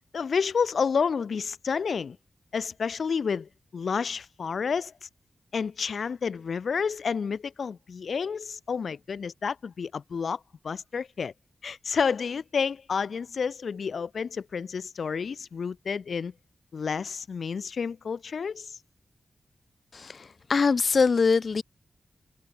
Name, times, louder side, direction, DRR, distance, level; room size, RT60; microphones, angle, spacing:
voice 1, 0.1-2.2 2.5-5.1 5.5-10.4 10.6-11.3 11.6-16.3 16.7-18.8, left 6 dB, 70° left, 2.3 m, -30 dB
voice 2, 19.9-21.6, left 5 dB, 55° left, 0.8 m, -23 dB
wide cardioid pair, 130°, 0 cm